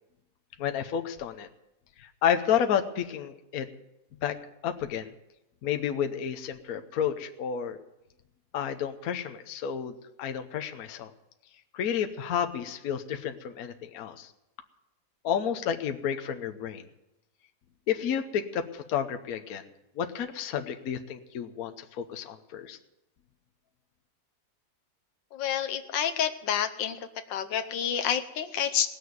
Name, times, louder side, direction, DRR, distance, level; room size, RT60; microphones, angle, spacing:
voice 1, 0.6-1.5 2.0-3.7 4.2-4.3 4.6-5.1 5.6-7.8 8.5-11.1 11.7-14.3 15.2-16.8 17.9-19.7 20.0-22.8, left 8 dB, 60° left, 6 dB, 1.2 m, -31 dB
voice 2, 25.3-27.0 27.3-28.9, left 9 dB, 80° left, 8 dB, 1.5 m, -29 dB
18.5 x 6.8 x 9.4 m, 0.94 s
omnidirectional pair, 2.0 m